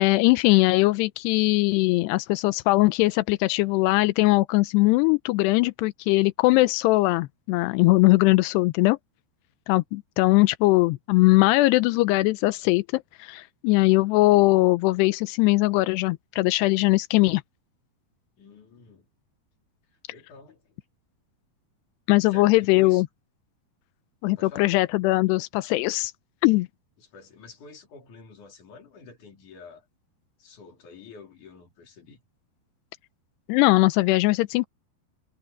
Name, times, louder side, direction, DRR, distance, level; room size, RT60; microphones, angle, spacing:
voice 1, 0.0-9.0 9.7-17.4 22.1-23.1 24.2-26.1 26.4-26.7 33.5-34.7, left 21 dB, 90° left, 2.8 m, -20 dB
voice 2, 18.4-19.1 20.1-20.8 22.3-23.0 24.4-24.7 27.0-29.8 30.4-32.2, left 4 dB, 50° left, 4.7 m, -47 dB
omnidirectional pair, 4.7 m